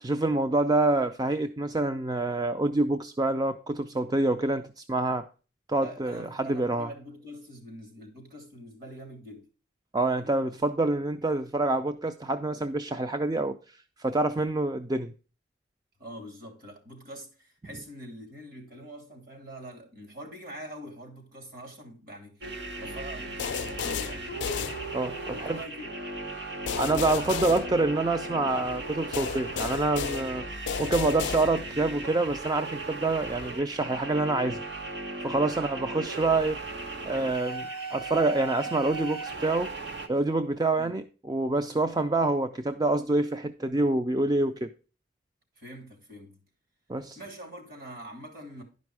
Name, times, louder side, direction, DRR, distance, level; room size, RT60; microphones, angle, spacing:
voice 1, 0.0-5.3 5.7-6.9 9.9-15.1 24.9-25.6 26.7-34.6 35.2-36.6 37.1-39.7 40.1-44.7 46.9-47.2, right 2 dB, 20° right, 0.4 m, -27 dB
voice 2, 5.8-9.5 16.0-24.3 25.3-26.0 40.8-40.9 45.6-46.4 47.1-48.6, right 1 dB, 55° right, 3.0 m, -44 dB
sound 1, 22.4-40.1, right 2 dB, 75° right, 1.4 m, -37 dB
sound 2, 23.4-25.3 26.7-28.4 29.1-31.9, left 7 dB, 90° left, 0.4 m, -34 dB
11.0 x 5.2 x 4.7 m
head